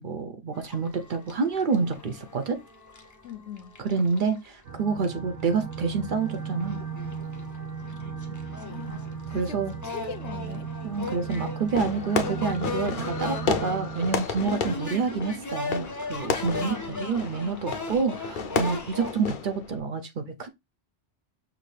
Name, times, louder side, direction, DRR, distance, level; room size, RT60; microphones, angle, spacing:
voice 1, 0.0-2.6 3.8-6.8 8.9-9.0 9.3-9.7 10.8-20.5, right 4 dB, 55° right, 0.7 m, -28 dB
sound 1, 0.5-4.5 5.0-5.1 5.4-19.1, left 2 dB, 20° left, 0.7 m, -38 dB
voice 2, 3.2-3.7 7.8-8.2 8.6-10.7 16.6-17.6, left 8 dB, 75° left, 1.0 m, -42 dB
sound 2, 4.6-14.2, right 6 dB, 90° right, 1.1 m, -36 dB
Fireworks, 11.7-19.8, left 6 dB, 55° left, 0.7 m, -32 dB
5.9 x 2.7 x 3.2 m
omnidirectional pair, 1.2 m